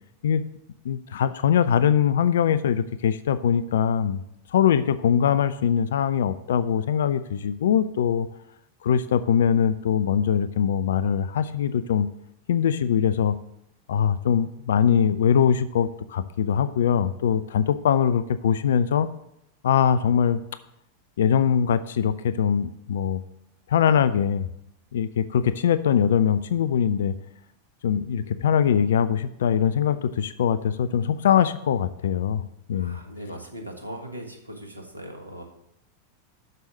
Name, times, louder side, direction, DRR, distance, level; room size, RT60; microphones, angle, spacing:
voice 1, 0.8-4.2 4.5-8.3 8.8-12.1 12.5-13.3 13.9-19.1 19.6-20.4 21.2-23.2 23.7-24.4 24.9-27.1 27.8-33.0, left 8 dB, 60° left, 14 dB, 0.4 m, -22 dB
voice 2, 32.7-35.4, right 1 dB, 80° right, 2 dB, 1.5 m, -39 dB
6.7 x 6.3 x 7.3 m, 0.79 s
figure-of-eight pair, 90°, 0 cm